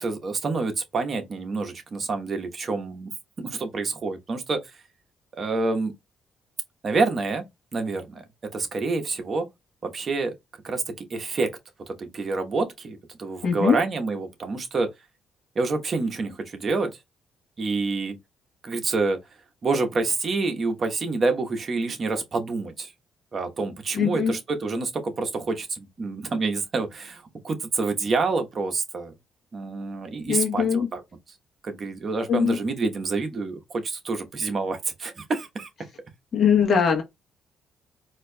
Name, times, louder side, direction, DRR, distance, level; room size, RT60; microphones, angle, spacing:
voice 1, 0.0-3.1 3.4-4.6 5.3-5.9 6.8-7.4 7.7-8.2 8.5-9.5 9.8-10.3 10.6-11.5 11.9-14.9 15.5-16.9 17.6-18.2 18.6-19.2 19.6-22.9 23.3-29.1 29.5-31.0 31.6-35.7, right 3 dB, 45° right, 1.0 m, -27 dB
voice 2, 13.4-13.8 23.9-24.3 30.3-30.9 32.3-32.6 36.3-37.0, left 7 dB, 55° left, 1.0 m, -21 dB
4.2 x 2.7 x 2.2 m
cardioid pair, 90°, 0 cm